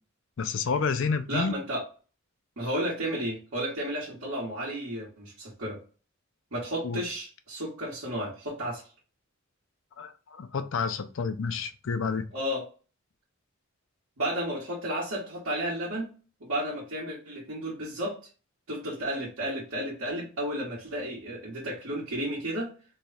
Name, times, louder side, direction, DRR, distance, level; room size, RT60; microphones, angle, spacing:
voice 1, 0.4-1.5 6.8-7.0 10.0-12.2, left 5 dB, 60° left, 0.4 m, -29 dB
voice 2, 1.3-1.8 2.6-5.8 6.5-8.8 12.3-12.6 14.2-16.1 16.4-18.2 18.7-22.7, right 1 dB, 75° right, 1.4 m, -32 dB
3.1 x 2.3 x 4.0 m
head